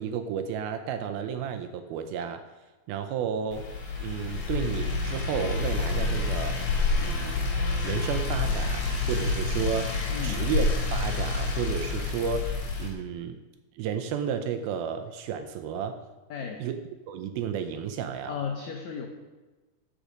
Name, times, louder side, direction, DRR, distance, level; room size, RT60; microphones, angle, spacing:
voice 1, 0.0-2.5 2.9-3.7 4.0-6.6 7.0-7.4 7.8-12.5 12.8-13.4 13.8-16.0 16.6-18.3, right 7 dB, 80° right, 7 dB, 2.3 m, -32 dB
sound 1, 3.5-12.9, left 3 dB, 50° left, 2.5 m, -28 dB
voice 2, 10.1-10.4 16.3-16.6 18.3-19.1, left 6 dB, 85° left, 2 dB, 1.6 m, -34 dB
14.0 x 6.4 x 5.1 m, 1.2 s
omnidirectional pair, 4.7 m